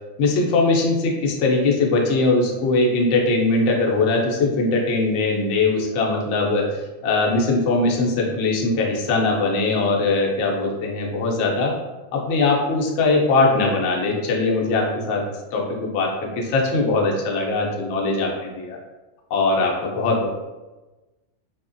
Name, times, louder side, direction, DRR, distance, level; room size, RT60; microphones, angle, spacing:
voice 1, 0.2-6.7 7.0-11.8 12.1-15.2 15.5-18.8 19.3-20.3, left 3 dB, 75° left, 0 dB, 0.9 m, -21 dB
3.2 x 2.1 x 2.5 m, 1.1 s
omnidirectional pair, 1.3 m